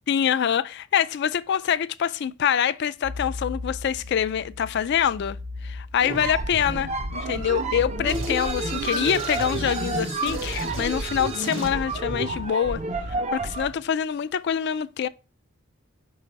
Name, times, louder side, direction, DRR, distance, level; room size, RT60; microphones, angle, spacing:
voice 1, 0.1-5.4 5.6-12.8 13.3-15.1, left 8 dB, 55° left, 0.3 m, -25 dB
sound 1, 3.0-10.1, left 3 dB, 80° right, 1.7 m, -37 dB
sound 2, 6.0-13.8, right 2 dB, 30° right, 0.5 m, -30 dB
sound 3, 8.1-11.8, right 5 dB, 60° right, 1.4 m, -36 dB
5.6 x 3.3 x 5.2 m
head